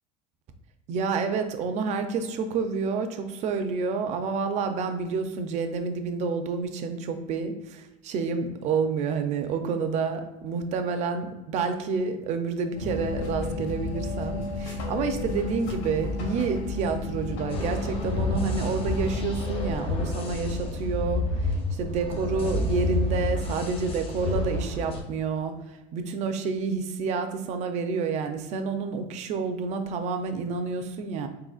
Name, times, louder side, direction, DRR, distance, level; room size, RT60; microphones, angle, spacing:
voice 1, 0.9-31.3, right 5 dB, 45° right, 7 dB, 0.5 m, -29 dB
sound 1, 12.8-19.8, left 3 dB, 85° left, 1.5 m, -32 dB
sound 2, 17.5-25.0, left 2 dB, 35° left, 0.6 m, -29 dB
4.1 x 3.8 x 2.4 m, 1.0 s
cardioid pair, 160°, 16 cm